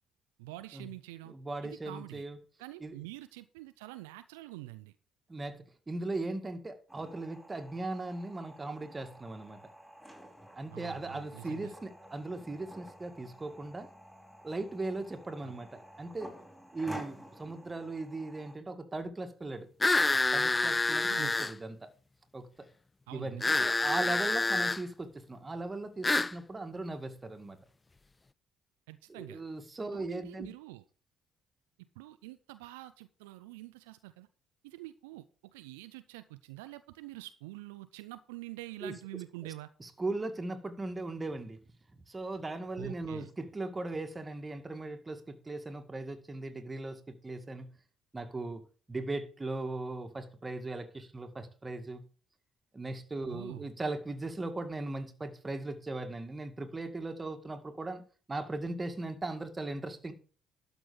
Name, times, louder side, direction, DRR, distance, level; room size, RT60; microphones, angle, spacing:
voice 1, 0.4-1.3 1.6-2.3 2.6-4.9 10.7-11.7 15.4-15.6 21.0-21.4 23.1-23.7 28.9-29.4 29.9-30.8 32.0-34.3 34.6-39.7 42.8-43.3 53.2-53.7, right 17 dB, 80° right, 0.5 m, -46 dB
voice 2, 1.3-2.4 2.8-2.9 5.3-9.6 10.5-13.9 14.4-16.3 16.7-19.7 20.1-21.9 22.3-22.5 23.1-27.6 29.1-30.5 38.8-38.9 39.8-41.6 42.1-47.7 48.1-48.6 48.9-52.0 52.7-58.0 58.3-60.1, right 2 dB, 25° right, 2.1 m, -38 dB
sound 1, 6.9-18.6, equal, 5° right, 4.4 m, -51 dB
sound 2, 19.8-21.5 23.4-24.8 26.0-26.3, left 3 dB, 20° left, 0.4 m, -27 dB
12.0 x 6.1 x 5.1 m
hypercardioid pair, 50°, 0 cm